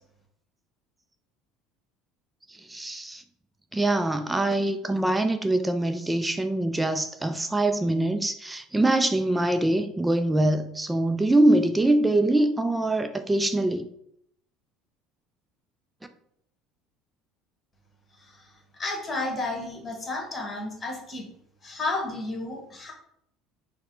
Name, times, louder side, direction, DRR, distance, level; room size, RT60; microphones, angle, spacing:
voice 1, 2.5-3.2 3.7-13.8, right 1 dB, 10° right, 0.3 m, -24 dB
voice 2, 18.2-21.3 21.6-22.9, left 2 dB, 25° left, 1.4 m, -32 dB
4.0 x 2.1 x 3.7 m
figure-of-eight pair, 65°, 0 cm